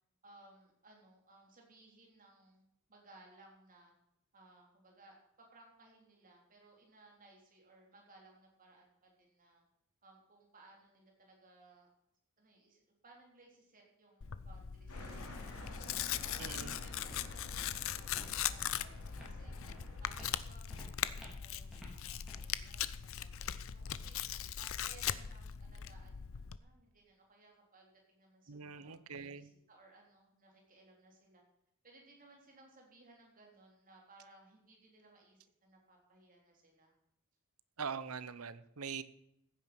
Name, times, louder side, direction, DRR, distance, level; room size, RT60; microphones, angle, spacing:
voice 1, 0.2-3.9 4.3-9.6 10.0-11.9 12.4-16.6 16.8-19.6 20.0-26.3 26.6-29.0 29.3-31.4 31.8-36.9, right 2 dB, 40° right, 0 dB, 3.6 m, -62 dB
Tearing, 14.2-26.6, left 10 dB, 65° left, 0.6 m, -40 dB
sound 1, 14.9-20.3, left 1 dB, 80° left, 3.4 m, -50 dB
voice 2, 16.4-16.8 28.5-29.5 37.8-39.0, right 6 dB, 75° right, 15 dB, 0.9 m, -43 dB
Walk footsteps, 17.0-24.4, equal, ahead, 4.5 m, -58 dB
15.0 x 9.3 x 6.0 m, 0.78 s
head